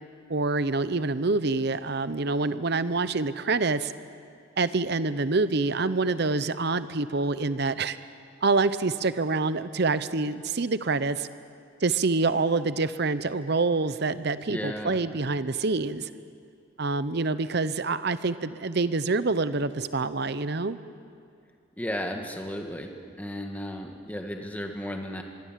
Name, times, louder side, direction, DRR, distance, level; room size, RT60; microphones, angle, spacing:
voice 1, 0.3-3.9 4.6-8.0 8.4-11.3 11.8-16.1 16.8-20.8, right 3 dB, 50° right, 14 dB, 0.7 m, -26 dB
voice 2, 14.5-15.0 21.8-25.2, equal, 10° left, 3 dB, 1.7 m, -34 dB
25.5 x 22.0 x 7.5 m, 2.3 s
head